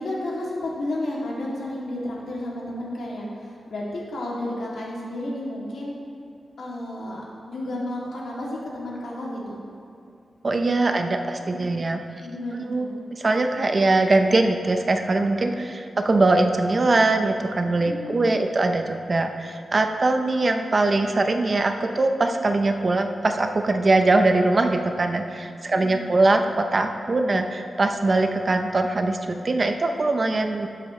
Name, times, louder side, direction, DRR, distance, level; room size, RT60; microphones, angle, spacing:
voice 1, 0.0-3.3 3.7-5.9 6.6-9.6 11.5-11.6 12.2-12.9 15.4-15.6 17.8-18.2 25.7-26.0, left 1 dB, 75° left, -5 dB, 2.6 m, -32 dB
voice 2, 10.4-12.0 12.5-30.7, right 2 dB, 35° right, 5 dB, 0.6 m, -22 dB
18.0 x 7.7 x 3.2 m, 2.4 s
wide cardioid pair, 145°, 0 cm